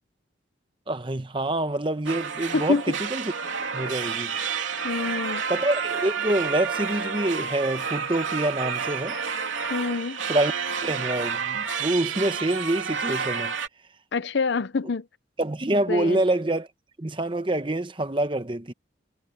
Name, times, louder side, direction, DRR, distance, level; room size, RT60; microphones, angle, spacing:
voice 1, 0.9-3.2 3.7-4.4 5.5-9.2 10.3-10.5 10.8-13.5 15.4-16.7 17.0-18.7, right 1 dB, 25° right, 0.9 m, -26 dB
sound 1, 2.1-13.7, right 6 dB, 80° right, 3.1 m, -30 dB
voice 2, 2.5-2.9 4.8-5.4 9.7-10.2 14.1-15.1 15.9-16.2, left 4 dB, 65° left, 0.6 m, -26 dB
head